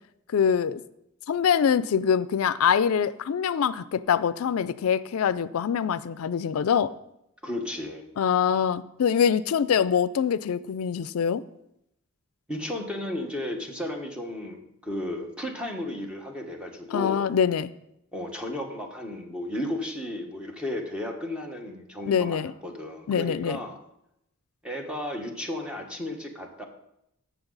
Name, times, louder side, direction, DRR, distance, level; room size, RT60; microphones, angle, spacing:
voice 1, 0.3-0.8 1.3-6.9 8.2-11.4 16.9-17.7 22.1-22.5 23.1-23.6, left 7 dB, 85° left, 16 dB, 0.4 m, -24 dB
voice 2, 7.4-8.0 12.5-17.3 18.1-23.8 24.6-26.6, left 1 dB, 5° right, 2 dB, 1.3 m, -34 dB
15.0 x 6.1 x 4.0 m, 0.82 s
head